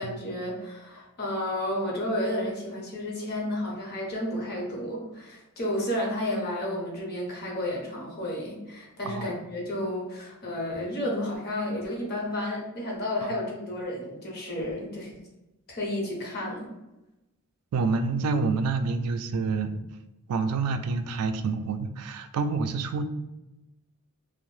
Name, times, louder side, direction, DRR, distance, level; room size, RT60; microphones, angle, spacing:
voice 1, 0.0-15.1 15.7-16.7, left 1 dB, 45° left, -3 dB, 0.8 m, -32 dB
voice 2, 17.7-19.8 20.3-23.0, right 4 dB, 75° right, 11 dB, 0.3 m, -28 dB
2.6 x 2.0 x 3.1 m, 0.97 s
head